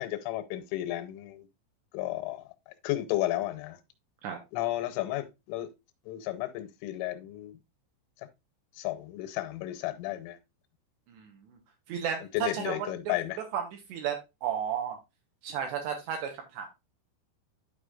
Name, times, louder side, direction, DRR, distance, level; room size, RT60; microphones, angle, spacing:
voice 1, 0.0-1.5 1.9-2.5 2.8-3.8 4.5-5.7 6.1-7.6 8.8-10.4 12.3-13.4, left 15 dB, 90° left, 3.2 m, -33 dB
voice 2, 11.1-11.6 11.9-12.8 13.5-13.6 13.9-15.0 15.4-16.7, right 8 dB, 75° right, 2.8 m, -33 dB
11.5 x 4.9 x 2.4 m
omnidirectional pair, 5.6 m